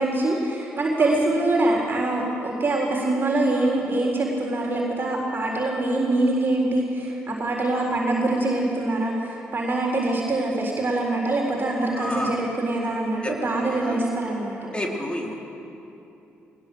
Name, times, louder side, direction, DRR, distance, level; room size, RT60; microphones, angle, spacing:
voice 1, 0.0-14.7, right 2 dB, 35° right, -2 dB, 3.9 m, -24 dB
voice 2, 12.0-12.4 13.2-14.0 14.7-15.3, left 1 dB, 15° left, -1 dB, 3.9 m, -30 dB
21.0 x 19.5 x 6.6 m, 2.9 s
figure-of-eight pair, 40°, 7 cm